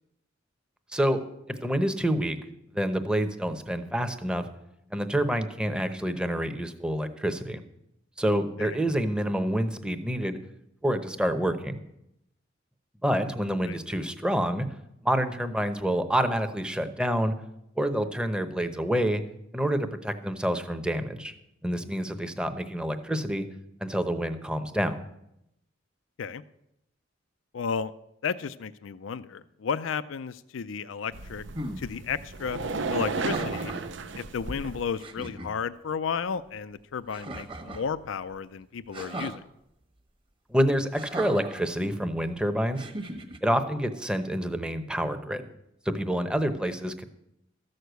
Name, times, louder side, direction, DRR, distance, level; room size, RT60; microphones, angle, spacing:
voice 1, 1.5-2.4 2.7-4.5 4.9-7.6 8.2-10.4 10.8-11.8 13.0-14.7 15.0-17.3 17.8-19.2 19.5-21.3 21.6-23.5 23.8-24.9 40.5-42.8 43.4-45.4 45.9-47.0, equal, 5° right, 8 dB, 0.8 m, -27 dB
voice 2, 27.5-27.9 28.2-31.4 31.8-32.6 32.9-33.7 34.2-39.4, left 6 dB, 85° left, 15 dB, 0.4 m, -33 dB
sound 1, 31.1-34.8, right 3 dB, 70° right, 0.7 m, -33 dB
sound 2, 31.5-31.8 33.1-33.9 34.6-34.7 35.0-35.5 37.1-37.9 38.9-39.4 40.9-41.6 42.7-43.4, right 1 dB, 25° right, 1.2 m, -37 dB
13.5 x 6.5 x 8.0 m, 0.82 s
head